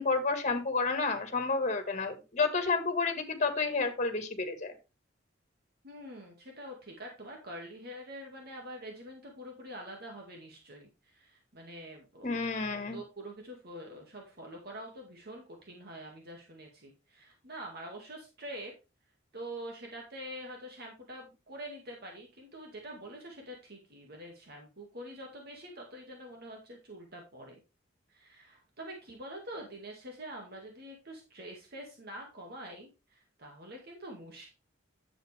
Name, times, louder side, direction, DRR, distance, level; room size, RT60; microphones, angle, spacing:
voice 1, 0.0-4.7 12.2-13.0, left 4 dB, 40° left, 7 dB, 1.9 m, -30 dB
voice 2, 5.8-12.4 12.7-18.7 19.3-27.6 28.1-34.5, right 1 dB, 55° right, 1 dB, 2.2 m, -45 dB
10.5 x 7.6 x 3.4 m, 0.28 s
head